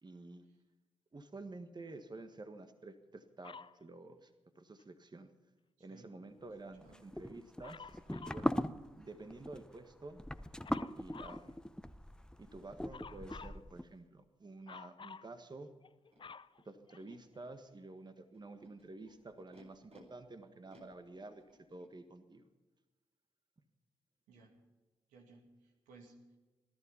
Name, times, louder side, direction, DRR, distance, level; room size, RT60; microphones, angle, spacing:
voice 1, 0.0-0.4 1.1-4.3 4.5-5.3 5.8-8.5 9.0-10.2 10.9-11.6 12.4-15.7 16.6-21.4 21.7-22.5, right 2 dB, 35° right, 8 dB, 1.6 m, -50 dB
Dog, 3.4-3.8 7.6-8.5 10.6-11.5 12.9-13.6 14.7-15.3 15.8-17.4 18.1-18.2, left 5 dB, 40° left, 0.6 m, -51 dB
voice 2, 5.8-6.1 6.4-7.1 24.3-24.6 25.1-26.4, right 3 dB, 85° right, 3 dB, 2.4 m, -61 dB
sound 1, 6.8-13.8, left 1 dB, 5° left, 0.8 m, -40 dB
Animal, 16.1-16.2 17.0-17.5 18.3-20.0 20.7-21.9, right 1 dB, 55° right, 4.4 m, -64 dB
20.0 x 12.0 x 5.7 m, 1.2 s
hypercardioid pair, 40°, 13 cm